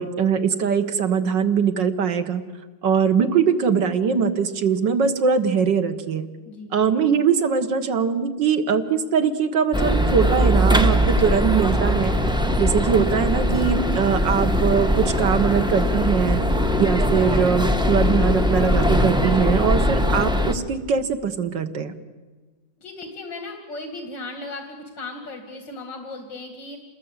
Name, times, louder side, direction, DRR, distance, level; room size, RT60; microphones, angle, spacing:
voice 1, 0.0-2.4 2.8-6.3 6.7-12.2 12.6-16.4 16.8-21.9, right 6 dB, 75° right, 7 dB, 2.1 m, -21 dB
sound 1, 9.7-20.5, equal, 5° right, 0.8 m, -21 dB
voice 2, 22.8-26.8, left 2 dB, 75° left, 5 dB, 2.8 m, -36 dB
27.5 x 20.5 x 8.2 m, 1.3 s
omnidirectional pair, 2.0 m